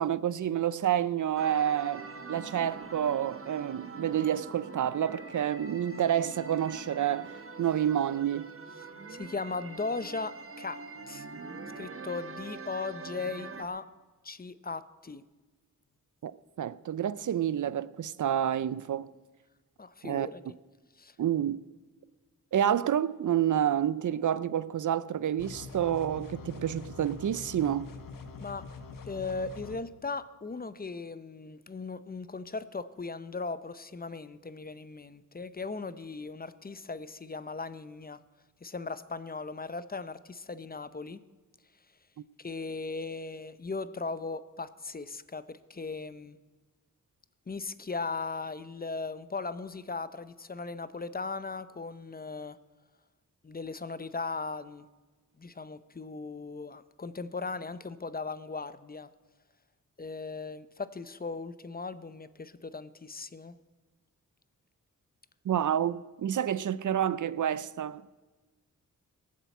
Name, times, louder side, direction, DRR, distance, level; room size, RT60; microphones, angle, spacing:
voice 1, 0.0-8.5 16.2-16.3 16.6-19.1 20.0-20.3 21.2-21.6 22.5-27.9 65.5-68.0, right 10 dB, 65° right, 0.5 m, -29 dB
sound 1, 1.4-13.6, right 4 dB, 40° right, 1.2 m, -44 dB
voice 2, 9.1-10.8 11.1-11.3 11.8-13.9 14.2-15.2 19.8-20.4 21.0-21.2 28.4-28.7 29.1-38.2 38.6-41.2 42.4-46.4 47.5-52.6 53.4-54.9 55.4-59.1 60.0-63.6, left 4 dB, 25° left, 0.7 m, -38 dB
sound 2, 25.4-29.8, left 4 dB, 80° left, 1.3 m, -44 dB
17.5 x 7.4 x 8.3 m
cardioid pair, 75°, 33 cm